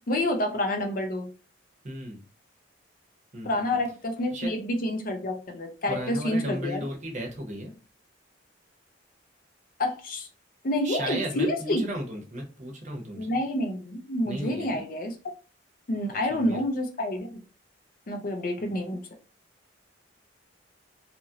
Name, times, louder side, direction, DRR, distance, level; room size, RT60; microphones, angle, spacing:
voice 1, 0.1-1.3 3.4-6.8 9.8-10.3 10.6-11.9 13.2-15.2 15.9-17.4 18.1-19.0, left 1 dB, 45° left, 4 dB, 0.5 m, -28 dB
voice 2, 1.8-2.2 3.3-3.8 4.3-4.5 5.9-7.7 10.8-13.4 14.2-14.8 16.3-16.6 18.6-18.7, right 1 dB, 40° right, 1 dB, 0.8 m, -35 dB
2.8 x 2.5 x 2.7 m, 0.33 s
head